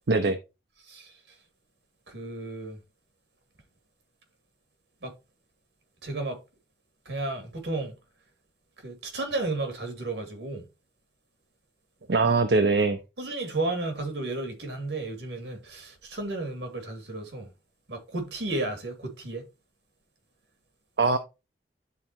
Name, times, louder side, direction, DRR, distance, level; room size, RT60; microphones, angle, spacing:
voice 1, 0.1-0.4 12.1-13.0 21.0-21.2, right 3 dB, 70° right, 0.7 m, -22 dB
voice 2, 0.8-1.4 2.1-2.8 5.0-5.1 6.0-6.4 7.1-7.9 8.8-10.6 13.2-17.5 17.9-19.4, right 2 dB, 85° right, 2.4 m, -33 dB
11.0 x 4.1 x 2.8 m
head